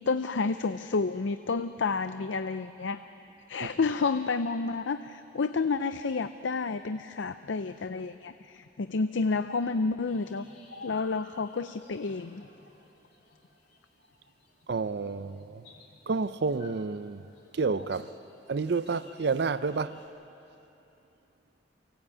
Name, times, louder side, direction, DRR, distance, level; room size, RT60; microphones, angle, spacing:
voice 1, 0.1-3.0 3.5-10.4 10.8-12.5, left 4 dB, 75° left, 0.5 m, -30 dB
sound 1, 10.1-20.1, left 3 dB, 55° left, 3.0 m, -55 dB
voice 2, 14.7-15.6 16.1-17.2 17.5-18.1 18.5-20.0, right 4 dB, 60° right, 0.5 m, -30 dB
24.5 x 17.5 x 8.6 m
head